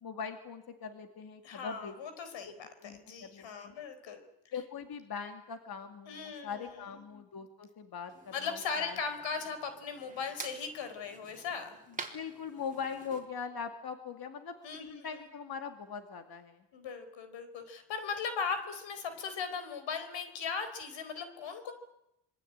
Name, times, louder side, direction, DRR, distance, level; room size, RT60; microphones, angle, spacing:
voice 1, 0.0-1.9 2.8-3.8 4.5-9.0 12.1-16.6, left 6 dB, 55° left, 6 dB, 2.4 m, -41 dB
voice 2, 1.4-4.2 6.1-6.7 8.3-11.8 14.6-15.2 16.7-21.7, left 5 dB, 90° left, 10 dB, 4.6 m, -38 dB
sound 1, 8.1-13.2, right 3 dB, 20° right, 4.0 m, -48 dB
26.5 x 22.5 x 8.9 m, 0.85 s
cardioid pair, 110°, 44 cm